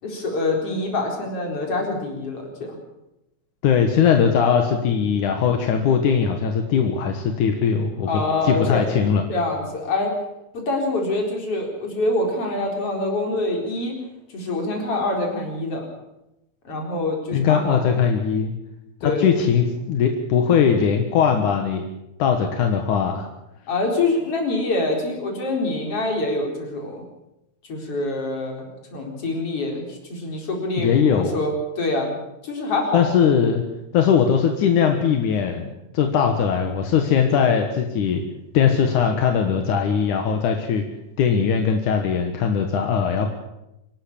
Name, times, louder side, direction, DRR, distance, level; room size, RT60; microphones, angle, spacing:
voice 1, 0.0-2.8 8.1-8.9 9.3-10.2 10.5-13.9 14.3-15.9 16.7-17.8 19.0-19.3 23.7-27.0 27.7-32.2 32.4-33.0, left 2 dB, 45° left, 1 dB, 5.2 m, -25 dB
voice 2, 3.6-9.2 17.3-18.5 19.0-21.8 22.2-23.3 30.8-31.4 32.9-33.6 33.9-38.2 38.5-40.8 41.2-43.3, left 7 dB, 80° left, 5 dB, 2.9 m, -20 dB
26.0 x 12.0 x 8.7 m, 0.91 s
omnidirectional pair, 3.5 m